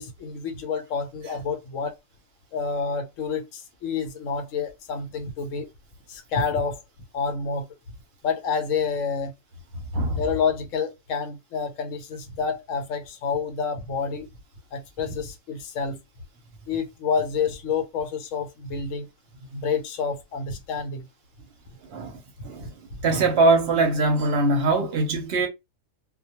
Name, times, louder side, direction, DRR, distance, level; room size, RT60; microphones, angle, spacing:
voice 1, 0.0-2.0 2.5-5.7 6.1-6.8 7.1-7.7 8.2-9.3 10.1-14.3 14.7-16.0 16.7-19.1 19.5-21.1 22.4-22.5, left 5 dB, 70° left, 0.9 m, -28 dB
voice 2, 23.0-25.5, right 2 dB, 55° right, 0.8 m, -22 dB
2.2 x 2.1 x 2.8 m
omnidirectional pair, 1.4 m